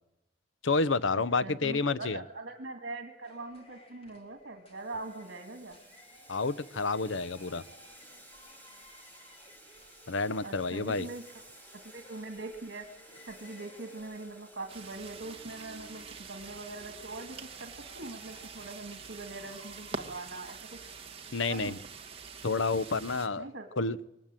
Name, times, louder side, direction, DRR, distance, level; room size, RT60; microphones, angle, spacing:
voice 1, 0.6-2.2 6.3-7.6 10.1-11.1 21.3-21.8 22.4-23.4 23.8-24.0, left 3 dB, 80° left, 16 dB, 0.8 m, -29 dB
voice 2, 1.1-5.8 10.4-11.2 11.9-12.9 13.2-20.6 21.5-21.8 23.4-23.9, right 2 dB, 70° right, 4 dB, 2.1 m, -42 dB
sound 1, 3.2-21.0, left 1 dB, 30° left, 3.6 m, -58 dB
Boiling, 4.7-21.5, right 1 dB, 10° left, 4.0 m, -57 dB
sound 2, 14.7-23.3, right 4 dB, 30° right, 1.7 m, -45 dB
24.0 x 20.0 x 9.0 m, 0.91 s
head